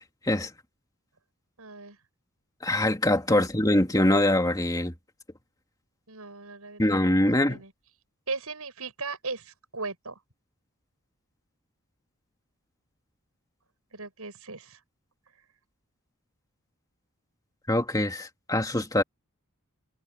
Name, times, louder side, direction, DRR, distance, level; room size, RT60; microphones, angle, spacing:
voice 1, 1.6-2.0 3.3-3.4 6.1-6.8 7.3-7.7 8.3-10.2 13.9-14.8, right 4 dB, 80° right, 7.0 m, -37 dB
voice 2, 2.6-4.9 6.8-7.6 17.7-19.0, left 1 dB, 15° left, 2.6 m, -23 dB
head